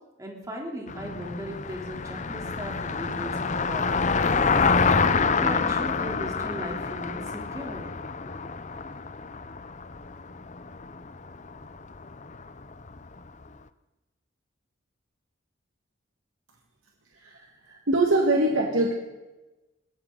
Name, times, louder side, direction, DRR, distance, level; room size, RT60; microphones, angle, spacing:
voice 1, 0.2-4.7 5.2-7.9 8.2-8.5, equal, 15° right, 0 dB, 3.4 m, -37 dB
Car passing by, 0.9-13.2, left 4 dB, 35° left, 0.7 m, -27 dB
voice 2, 17.1-18.9, right 2 dB, 85° right, 1 dB, 1.9 m, -24 dB
21.5 x 17.0 x 4.0 m, 1.1 s
head